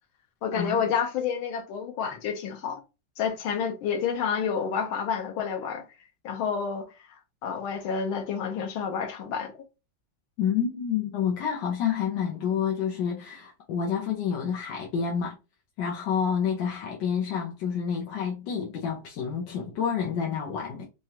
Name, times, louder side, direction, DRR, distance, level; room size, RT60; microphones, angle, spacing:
voice 1, 0.4-2.8 3.2-5.8 6.2-6.9 7.4-9.5, left 6 dB, 85° left, 1.7 m, -29 dB
voice 2, 10.4-15.4 15.8-20.9, left 7 dB, 70° left, 1.4 m, -29 dB
4.8 x 2.3 x 2.8 m
omnidirectional pair, 2.2 m